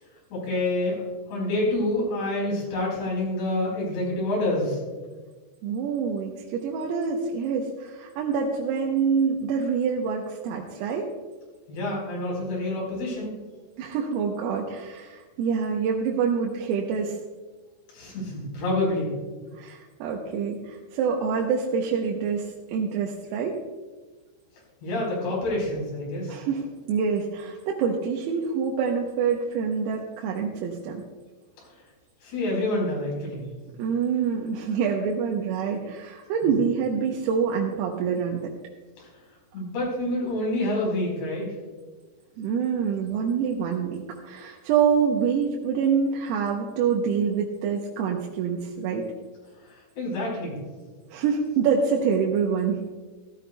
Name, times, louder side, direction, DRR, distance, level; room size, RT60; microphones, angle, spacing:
voice 1, 0.3-1.0 1.3-4.8 11.7-13.4 17.9-19.1 24.8-26.3 32.2-33.4 36.4-36.5 39.0-39.1 39.5-41.5 49.6-50.6, left 1 dB, 55° left, -3 dB, 6.4 m, -27 dB
voice 2, 5.6-11.1 13.8-17.2 19.6-23.6 26.3-31.0 33.8-38.5 42.4-49.1 51.1-52.8, right 6 dB, 90° right, 0 dB, 3.6 m, -26 dB
16.0 x 14.0 x 2.3 m, 1.3 s
omnidirectional pair, 5.9 m